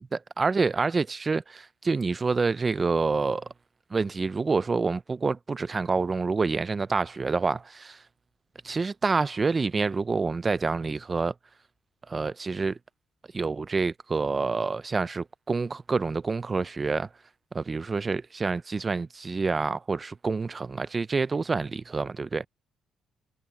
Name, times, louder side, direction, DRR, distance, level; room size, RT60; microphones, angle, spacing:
voice 1, 0.1-3.5 3.9-8.0 8.6-11.3 12.1-12.8 13.3-17.1 17.5-22.5, right 4 dB, 30° right, 0.6 m, -27 dB
cardioid pair, 90°, 0 cm